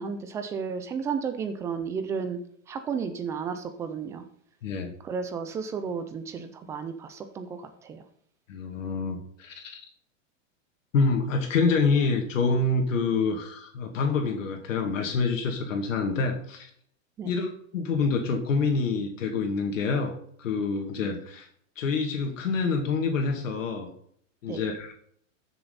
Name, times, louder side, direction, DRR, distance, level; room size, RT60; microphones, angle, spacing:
voice 1, 0.0-2.4 2.7-4.3 5.0-8.0 17.2-17.3 24.5-24.6, right 6 dB, 10° right, 9 dB, 0.3 m, -33 dB
voice 2, 4.6-4.9 8.5-9.8 10.9-16.7 17.2-21.5 21.8-23.9 24.4-24.9, left 4 dB, 80° left, 3 dB, 2.4 m, -27 dB
14.5 x 6.8 x 4.1 m, 0.63 s
supercardioid pair, 155°, 38 cm